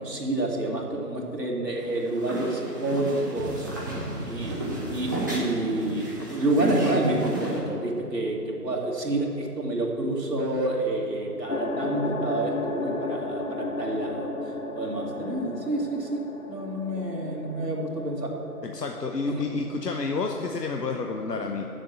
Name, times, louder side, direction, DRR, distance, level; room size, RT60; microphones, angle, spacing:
voice 1, 0.0-3.9 4.2-18.3 19.3-19.4, right 2 dB, 85° right, -2 dB, 2.5 m, -29 dB
sound 1, 1.8-7.6, right 1 dB, 15° right, 0.9 m, -33 dB
sound 2, 3.4-6.8, right 2 dB, 55° right, 1.0 m, -38 dB
sound 3, 11.5-20.2, left 3 dB, 55° left, 0.9 m, -34 dB
voice 2, 18.6-21.7, left 4 dB, 85° left, 3 dB, 0.9 m, -30 dB
7.9 x 7.3 x 8.4 m, 3.0 s
figure-of-eight pair, 160°, 47 cm